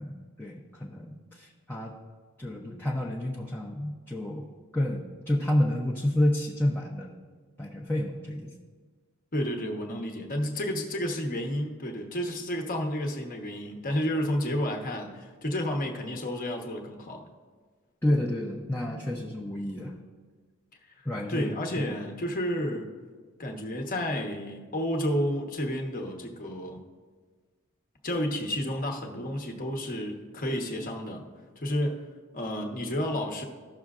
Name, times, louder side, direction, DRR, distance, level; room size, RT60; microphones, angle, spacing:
voice 1, 0.0-1.9 2.4-4.5 4.7-7.1 7.6-8.5 18.0-19.9 21.0-21.8, left 1 dB, 10° left, -4 dB, 0.7 m, -29 dB
voice 2, 9.3-17.2 21.3-22.9 23.4-26.8 28.0-31.3 31.6-32.0 32.3-33.4, equal, 40° left, 3 dB, 1.0 m, -31 dB
15.5 x 6.3 x 2.4 m, 1.5 s
head